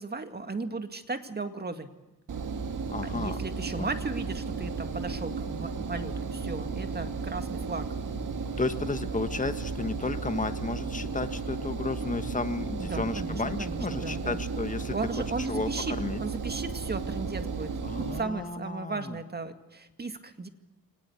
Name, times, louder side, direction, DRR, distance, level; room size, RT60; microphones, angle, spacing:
voice 1, 0.0-1.9 3.0-7.9 12.8-14.4 14.9-20.5, right 3 dB, 25° right, 8 dB, 2.1 m, -36 dB
Engine, 2.3-18.2, right 4 dB, 55° right, 2.1 m, -34 dB
voice 2, 2.9-3.4 3.8-3.9 8.6-15.0 15.4-16.2 17.8-19.2, left 3 dB, 20° left, 9 dB, 1.5 m, -33 dB
24.5 x 19.0 x 8.5 m, 1.0 s
cardioid pair, 90°, 36 cm